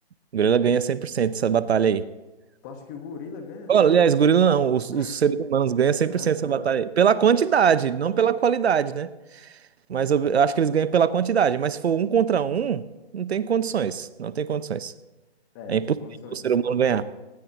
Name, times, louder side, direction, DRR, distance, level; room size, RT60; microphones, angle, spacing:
voice 1, 0.3-2.0 3.7-9.1 9.9-12.8 13.1-14.9 15.7-15.8 16.3-17.0, right 7 dB, 70° right, 15 dB, 0.9 m, -21 dB
voice 2, 2.6-3.7 4.9-5.2 6.0-6.7 7.6-7.8 15.5-17.0, left 5 dB, 20° left, 5 dB, 1.4 m, -41 dB
19.0 x 18.0 x 3.0 m, 1.1 s
hypercardioid pair, 165°, 33 cm